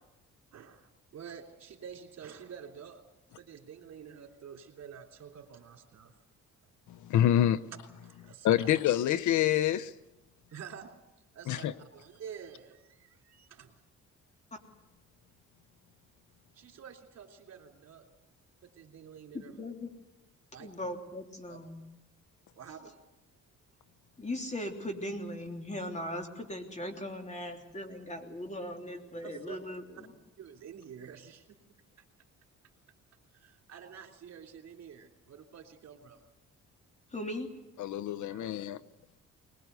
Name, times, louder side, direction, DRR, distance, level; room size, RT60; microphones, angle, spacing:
voice 1, 0.5-3.0 3.3-6.1 8.0-8.8 10.5-11.0 11.3-13.8 16.5-18.1 18.6-19.6 20.5-20.7 21.5-21.6 22.5-23.0 29.2-29.6 30.4-31.6 33.3-36.2 38.3-38.5, right 7 dB, 60° right, 3.4 m, -49 dB
voice 2, 6.9-7.6 8.4-9.9 11.5-11.7 37.8-38.8, left 11 dB, 75° left, 0.8 m, -26 dB
voice 3, 19.3-19.9 20.6-21.8 24.2-30.1 37.1-37.5, left 1 dB, 25° left, 3.3 m, -39 dB
21.0 x 20.5 x 8.2 m
cardioid pair, 90°, 30 cm